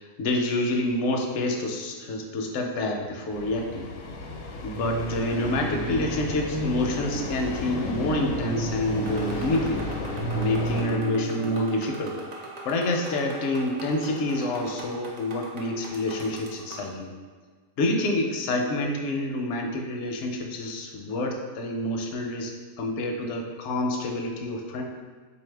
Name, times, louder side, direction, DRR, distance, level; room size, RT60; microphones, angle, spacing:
voice 1, 0.0-3.9 4.6-9.9 10.3-12.2 12.6-17.1 17.8-22.5 22.8-24.8, left 1 dB, 65° left, 2 dB, 0.7 m, -28 dB
sound 1, 3.0-3.1 3.6-3.7 4.1-4.2 4.8-11.6, right 3 dB, 65° right, 1.0 m, -33 dB
sound 2, 3.3-10.8, left 3 dB, 85° left, 1.1 m, -35 dB
sound 3, 9.0-16.9, right 2 dB, 85° right, 0.3 m, -41 dB
3.9 x 2.7 x 3.2 m, 1.5 s
omnidirectional pair, 1.5 m